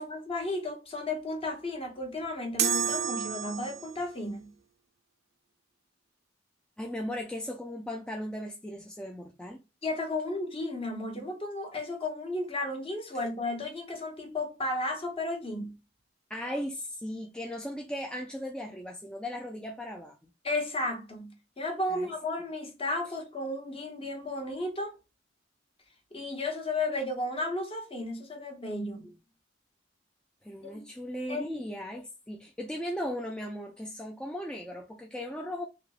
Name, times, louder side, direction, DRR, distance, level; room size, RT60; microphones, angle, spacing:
voice 1, 0.0-4.5 9.8-15.7 20.4-24.9 26.1-29.1 30.6-30.8 31.3-31.5, left 2 dB, 30° left, 1.0 m, -34 dB
sound 1, 2.6-4.1, right 8 dB, 60° right, 0.5 m, -30 dB
voice 2, 6.8-9.6 16.3-20.3 21.9-22.1 30.4-35.6, equal, 5° left, 0.4 m, -37 dB
3.4 x 2.8 x 2.3 m
head